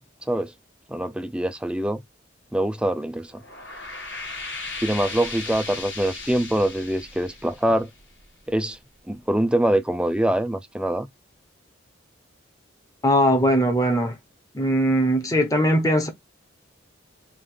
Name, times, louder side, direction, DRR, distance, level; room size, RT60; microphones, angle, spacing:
voice 1, 0.9-2.0 2.5-3.4 4.8-7.9 8.5-8.8 9.1-11.1, right 1 dB, 5° right, 0.4 m, -24 dB
sound 1, 3.3-8.5, left 3 dB, 70° left, 3.1 m, -36 dB
voice 2, 13.0-14.2 14.5-16.1, equal, 15° left, 1.0 m, -20 dB
5.0 x 2.5 x 3.8 m
head